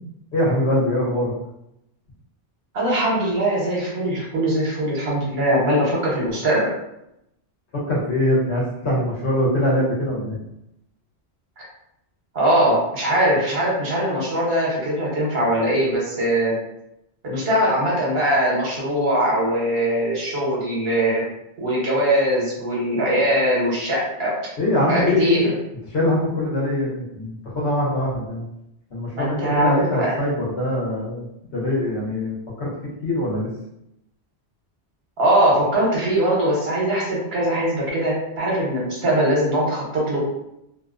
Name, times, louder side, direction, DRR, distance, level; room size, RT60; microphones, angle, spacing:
voice 1, 0.3-1.3 7.7-10.4 24.6-25.4 25.9-28.4 28.9-31.3 31.5-32.7 33.0-33.5, left 1 dB, 75° left, -4 dB, 1.1 m, -22 dB
voice 2, 2.7-6.7 11.6-11.7 12.3-16.6 17.2-21.2 21.6-24.4 24.9-25.4 29.1-30.1 35.2-40.2, right 1 dB, 65° right, -5 dB, 1.1 m, -21 dB
2.6 x 2.0 x 2.4 m, 0.84 s
omnidirectional pair, 1.1 m